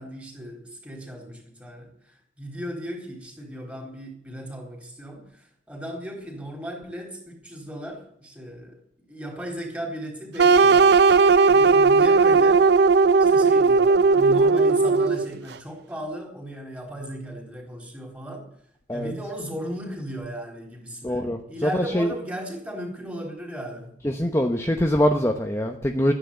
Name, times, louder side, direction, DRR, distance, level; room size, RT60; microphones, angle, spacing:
voice 1, 0.0-12.7 13.2-18.5 18.9-24.0, equal, 10° right, 1 dB, 3.9 m, -36 dB
sound 1, 10.4-15.3, right 4 dB, 60° right, 0.5 m, -17 dB
voice 2, 21.0-22.1 24.0-26.1, equal, 15° left, 4 dB, 1.0 m, -23 dB
13.5 x 10.5 x 8.2 m, 0.66 s
head